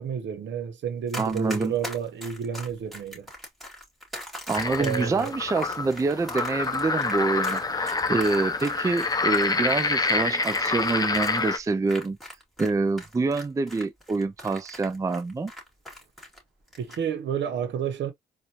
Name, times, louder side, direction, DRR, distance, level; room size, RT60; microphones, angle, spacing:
voice 1, 0.0-3.3 4.8-5.3 16.8-18.1, right 7 dB, 65° right, 1.0 m, -30 dB
Run, 1.1-12.7 13.0-16.4 16.7-17.0, left 1 dB, ahead, 2.6 m, -40 dB
voice 2, 1.2-1.7 4.5-12.2 12.6-15.5, right 3 dB, 15° right, 0.4 m, -26 dB
sound 1, 4.5-11.6, left 3 dB, 20° left, 0.7 m, -27 dB
4.3 x 2.5 x 3.0 m
cardioid pair, 90°, 20 cm